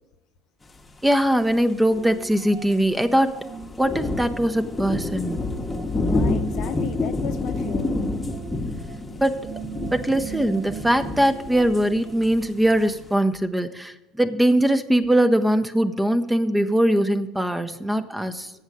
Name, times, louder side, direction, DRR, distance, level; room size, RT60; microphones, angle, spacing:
voice 1, 1.0-3.4 3.8-5.4 9.2-9.5 9.9-18.5, right 1 dB, 10° right, 9 dB, 0.6 m, -21 dB
sound 1, 1.5-1.6 1.8-1.9 2.2-2.4 2.7-3.1 3.5-13.1, left 2 dB, 20° left, 1.0 m, -28 dB
sound 2, 1.8-12.5, right 8 dB, 50° right, 0.8 m, -42 dB
voice 2, 5.9-8.0, left 9 dB, 60° left, 9 dB, 0.7 m, -35 dB
8.0 x 6.5 x 7.3 m, 1.0 s
supercardioid pair, 85°, 0 cm